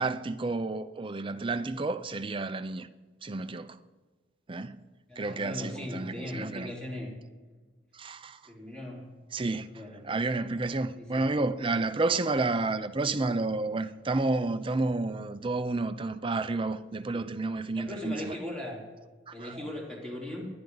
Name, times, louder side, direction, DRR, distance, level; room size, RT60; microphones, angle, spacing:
voice 1, 0.0-2.9 3.2-3.8 4.5-4.8 5.2-6.7 7.9-8.4 9.3-18.4 19.3-19.6, right 3 dB, 30° right, 0.6 m, -31 dB
voice 2, 5.1-7.2 8.5-9.1 9.7-10.1 11.0-11.2 17.1-17.3 17.8-18.9 19.3-20.5, left 1 dB, 5° left, 3.8 m, -38 dB
28.5 x 10.5 x 4.0 m
head